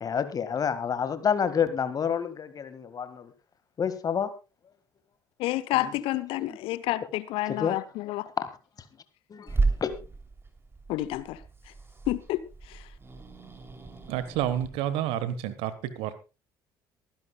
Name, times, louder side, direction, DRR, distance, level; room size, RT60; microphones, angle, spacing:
voice 1, 0.0-3.3 3.8-4.3 5.7-5.9 6.5-6.6 7.5-7.8 8.4-8.5 9.3-9.5 9.8-9.9, left 7 dB, 35° left, 1.8 m, -28 dB
voice 2, 5.4-8.3 10.9-11.4 12.1-12.4, left 16 dB, 60° left, 0.8 m, -29 dB
Growling / Hiss, 9.5-14.7, right 3 dB, 20° right, 3.1 m, -33 dB
voice 3, 14.1-16.1, right 11 dB, 60° right, 1.3 m, -29 dB
23.5 x 10.5 x 2.3 m
figure-of-eight pair, 55°, 11 cm